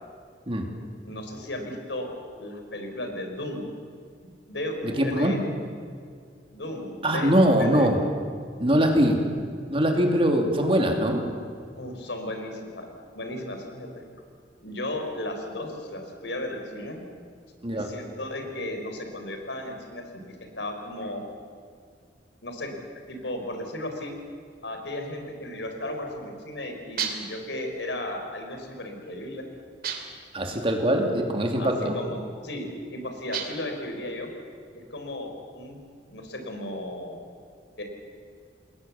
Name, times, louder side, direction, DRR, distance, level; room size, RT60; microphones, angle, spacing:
voice 1, 1.0-2.1 2.4-3.7 4.5-5.4 6.5-7.9 11.8-12.9 13.1-14.0 14.6-17.0 17.7-21.2 22.4-22.7 23.1-24.1 24.6-29.5 31.6-34.3 34.7-35.8 36.1-37.2 37.8-37.9, left 1 dB, 90° left, 4 dB, 4.5 m, -35 dB
voice 2, 4.8-5.4 7.0-8.0 8.6-9.2 9.7-11.2 17.6-17.9 30.3-32.0, equal, 30° right, 2 dB, 3.1 m, -22 dB
sound 1, 27.0-27.4 29.8-30.3 33.3-33.8, right 6 dB, 55° right, 2.9 m, -32 dB
28.0 x 20.5 x 7.4 m, 2.2 s
head